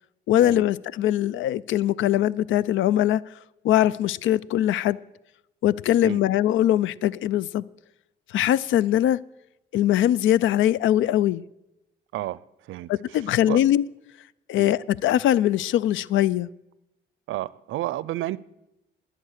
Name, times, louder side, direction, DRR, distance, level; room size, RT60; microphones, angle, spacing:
voice 1, 0.3-3.2 3.6-5.0 5.6-7.6 8.3-9.2 9.7-11.4 12.9-13.8 14.5-16.5, left 12 dB, 75° left, 0.4 m, -21 dB
voice 2, 12.1-13.6 14.6-14.7 17.3-18.4, right 15 dB, 80° right, 0.5 m, -32 dB
20.0 x 7.9 x 6.5 m
cardioid pair, 90°, 20 cm